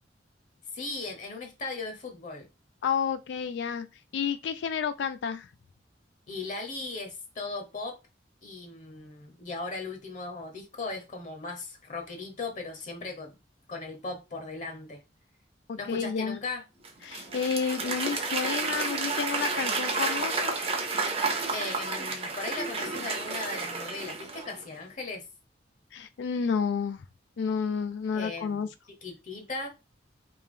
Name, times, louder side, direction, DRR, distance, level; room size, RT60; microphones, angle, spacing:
voice 1, 0.7-2.5 6.3-8.0 8.4-13.4 13.7-15.0 15.8-16.6 21.5-25.2 28.1-28.7 29.0-29.7, left 3 dB, 40° left, 0.9 m, -37 dB
voice 2, 2.8-3.9 4.1-5.5 15.7-16.4 17.0-20.6 25.9-27.0 27.4-28.7, left 6 dB, 70° left, 0.3 m, -30 dB
Applause / Crowd, 16.8-24.6, right 3 dB, 30° right, 0.7 m, -31 dB
3.4 x 2.8 x 3.6 m
head